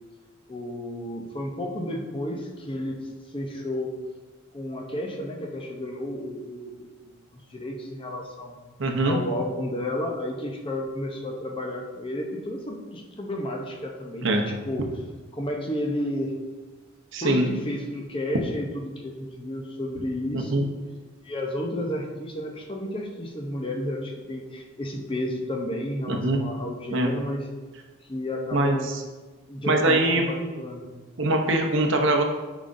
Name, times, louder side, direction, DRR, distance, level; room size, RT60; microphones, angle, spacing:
voice 1, 0.5-3.0 3.3-3.9 4.5-8.6 9.0-14.9 15.3-16.3 17.2-20.7 21.2-27.5 28.1-28.9 29.5-30.9, left 1 dB, 25° left, 1 dB, 0.7 m, -32 dB
voice 2, 8.8-9.2 14.2-14.4 17.1-17.5 20.3-20.6 26.1-26.4 26.9-27.1 28.5-28.8 29.7-30.3 31.2-32.2, right 2 dB, 60° right, 3 dB, 0.7 m, -22 dB
9.2 x 5.0 x 2.6 m, 1.3 s
head